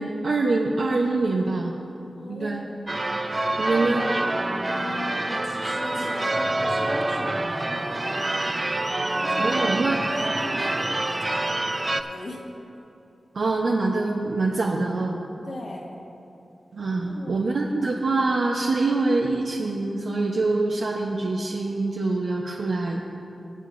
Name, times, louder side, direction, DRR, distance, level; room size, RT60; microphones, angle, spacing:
voice 1, 0.0-1.7 2.3-2.6 3.6-4.1 9.4-10.1 13.3-15.2 16.7-23.0, right 3 dB, 80° right, -2 dB, 0.8 m, -25 dB
voice 2, 2.2-3.1 4.6-8.3 9.2-9.5 10.0-11.5 12.1-12.5 15.5-15.9 16.8-17.4, left 2 dB, 65° left, -3 dB, 1.9 m, -38 dB
Church bell / Car / Alarm, 2.9-12.0, right 2 dB, 25° right, 0.5 m, -26 dB
20.0 x 9.1 x 2.6 m, 2.8 s
wide cardioid pair, 110°, 0 cm